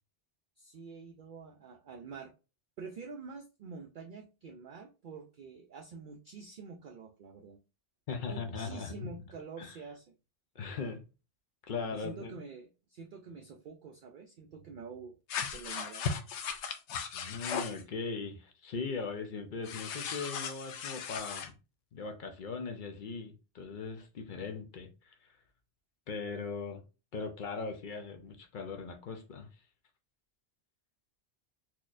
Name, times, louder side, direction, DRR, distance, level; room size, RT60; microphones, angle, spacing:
voice 1, 0.6-2.3 2.8-7.6 8.2-10.1 11.9-15.1 15.5-16.0, right 5 dB, 60° right, 0.6 m, -47 dB
voice 2, 8.1-9.1 9.6-9.8 10.6-11.0 11.7-12.4 17.1-21.5 21.9-25.1 26.1-26.8 27.1-29.5, left 4 dB, 55° left, 0.6 m, -39 dB
sound 1, 15.3-17.8 19.6-21.5, left 6 dB, 85° left, 0.9 m, -37 dB
4.0 x 2.9 x 2.4 m
omnidirectional pair, 1.1 m